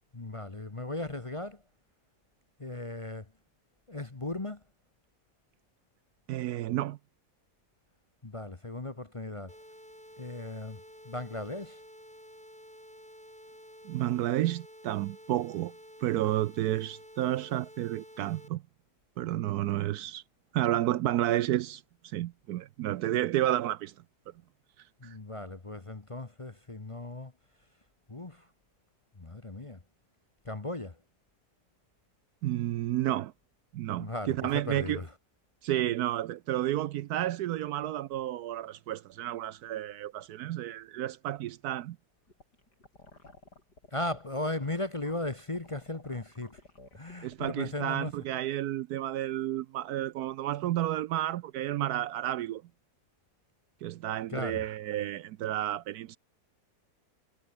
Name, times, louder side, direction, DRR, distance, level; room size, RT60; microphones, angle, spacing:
voice 1, 0.1-1.6 2.6-3.3 3.9-4.6 8.2-9.5 10.2-11.8 25.0-27.3 28.1-28.5 29.2-29.8 30.4-31.0 34.0-35.1 43.9-46.6 46.9-48.1 54.3-54.6, left 2 dB, 20° left, 1.0 m, -37 dB
voice 2, 6.3-7.0 13.8-15.7 16.0-18.6 19.2-20.2 20.5-23.9 25.0-25.1 32.4-33.3 33.7-35.0 35.6-42.0 47.2-52.6 53.8-56.2, right 13 dB, 75° right, 1.0 m, -31 dB
sound 1, 9.5-18.5, equal, 5° left, 4.2 m, -51 dB
sound 2, 42.3-47.8, left 2 dB, 75° left, 7.0 m, -55 dB
omnidirectional pair, 1.8 m